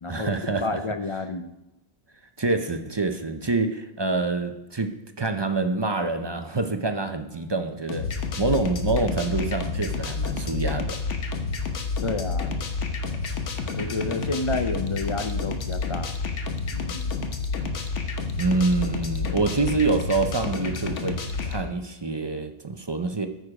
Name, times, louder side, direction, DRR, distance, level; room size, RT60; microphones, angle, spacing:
voice 1, 0.1-0.8 2.4-8.1 8.4-11.0 18.4-21.2 21.4-23.3, right 3 dB, 30° right, 7 dB, 0.5 m, -26 dB
voice 2, 0.6-1.5 12.0-12.5 13.7-16.1 16.7-17.1, left 3 dB, 45° left, 9 dB, 0.4 m, -30 dB
sound 1, 7.9-21.6, left 4 dB, 85° left, 1.3 m, -29 dB
14.0 x 6.6 x 4.9 m, 0.92 s
omnidirectional pair, 1.2 m